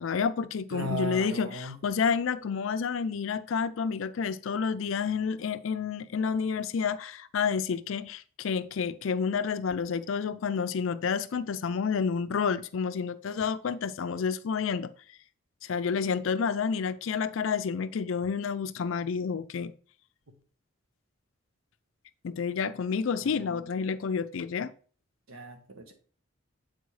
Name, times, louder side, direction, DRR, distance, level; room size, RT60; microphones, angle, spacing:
voice 1, 0.0-14.9 15.6-19.7 22.2-24.7, left 6 dB, 75° left, 0.4 m, -29 dB
voice 2, 0.7-1.8 23.2-23.6 25.3-25.9, equal, 85° right, 1.3 m, -37 dB
8.1 x 4.4 x 3.2 m
head